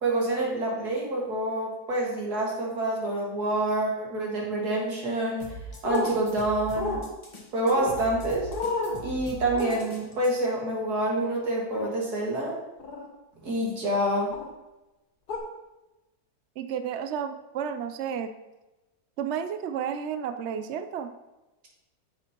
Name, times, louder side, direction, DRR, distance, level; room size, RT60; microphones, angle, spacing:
voice 1, 0.0-5.5 5.8-7.0 7.5-8.5 9.0-12.6 13.4-14.3, right 1 dB, 80° right, -3 dB, 2.4 m, -27 dB
sound 1, 5.4-10.3, equal, 25° left, 0.9 m, -41 dB
sound 2, 5.8-6.1 6.8-7.0 7.7-8.0 8.5-9.0 9.5-9.8 11.8-11.9 12.8-13.1 14.3-14.5 15.3-15.4, left 3 dB, 80° left, 1.9 m, -30 dB
voice 2, 16.6-18.3 19.2-21.1, right 8 dB, 65° right, 8 dB, 0.7 m, -32 dB
8.8 x 7.1 x 2.9 m, 1.0 s
omnidirectional pair, 1.7 m